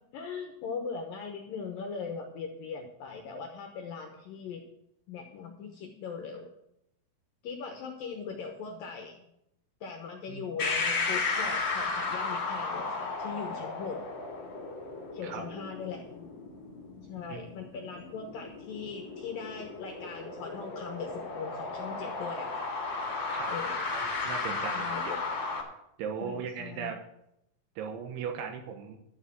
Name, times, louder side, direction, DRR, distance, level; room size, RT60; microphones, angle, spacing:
voice 1, 0.1-4.6 5.1-6.5 7.4-9.3 9.8-14.0 15.1-16.3 17.1-22.7 23.5-23.8 24.7-25.2 26.2-27.0, left 5 dB, 70° left, 3 dB, 2.3 m, -40 dB
sound 1, 10.6-25.6, left 4 dB, 35° left, 2.0 m, -34 dB
voice 2, 23.9-24.9 26.0-27.0 27.8-29.0, right 7 dB, 90° right, 5 dB, 3.7 m, -37 dB
12.0 x 6.6 x 7.6 m, 0.81 s
omnidirectional pair, 5.2 m